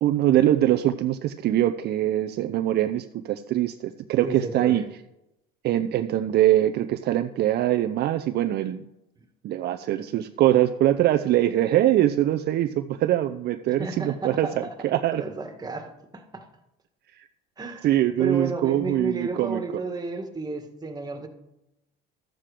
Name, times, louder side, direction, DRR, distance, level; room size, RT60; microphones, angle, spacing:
voice 1, 0.0-4.8 5.6-8.8 9.4-15.2 17.1-17.2 17.8-19.6, right 13 dB, 55° right, 7 dB, 0.6 m, -23 dB
voice 2, 4.2-4.9 13.7-14.7 15.1-16.5 17.6-17.9 18.2-21.3, right 3 dB, 20° right, 5 dB, 1.9 m, -32 dB
13.0 x 7.6 x 5.0 m, 0.90 s
supercardioid pair, 105°, 21 cm